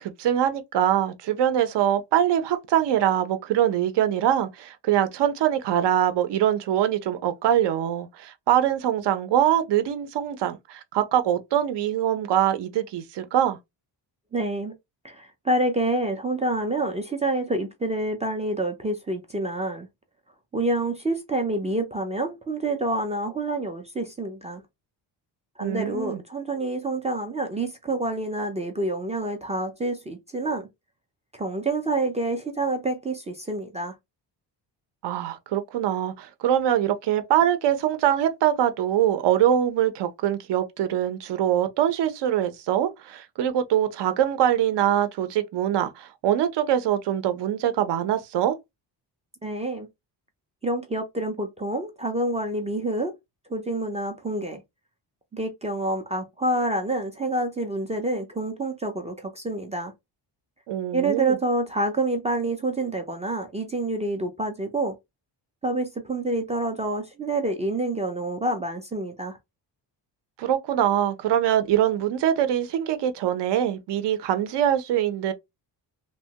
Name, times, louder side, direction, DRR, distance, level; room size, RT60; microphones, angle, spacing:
voice 1, 0.0-13.6 25.6-26.2 35.0-48.6 60.7-61.4 70.4-75.3, right 10 dB, 65° right, 0.6 m, -23 dB
voice 2, 14.3-14.7 15.0-19.9 20.5-24.6 25.6-30.7 31.3-33.9 49.4-49.9 50.6-53.1 53.5-54.6 55.3-59.9 60.9-65.0 65.6-69.4, right 2 dB, 15° right, 0.3 m, -27 dB
2.9 x 2.2 x 2.8 m
cardioid pair, 150°, 44 cm